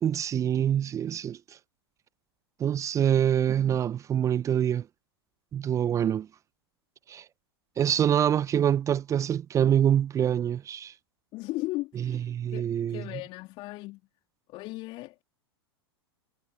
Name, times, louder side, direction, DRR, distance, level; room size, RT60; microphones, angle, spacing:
voice 1, 0.0-1.4 2.6-4.8 5.5-6.3 7.1-7.2 7.8-10.9 12.0-13.0, right 9 dB, 25° right, 0.8 m, -25 dB
voice 2, 11.3-14.0 14.5-15.2, left 20 dB, 40° left, 2.9 m, -37 dB
figure-of-eight pair, 95°, 13 cm